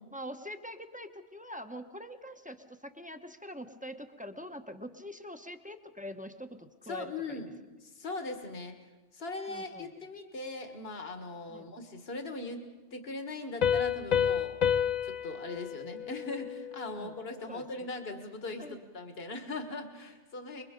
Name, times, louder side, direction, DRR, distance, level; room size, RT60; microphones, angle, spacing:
voice 1, 0.1-7.4 9.5-9.9 11.5-11.7 14.8-15.0 17.0-17.2 17.5-17.9 18.6-18.8, equal, 5° right, 6 dB, 1.0 m, -44 dB
voice 2, 6.8-7.5 7.8-8.8 9.1-14.6 15.0-20.6, left 2 dB, 60° left, 6 dB, 2.0 m, -40 dB
Piano, 13.6-17.0, left 8 dB, 40° left, 0.8 m, -30 dB
27.0 x 22.5 x 5.3 m, 1.2 s
omnidirectional pair, 1.2 m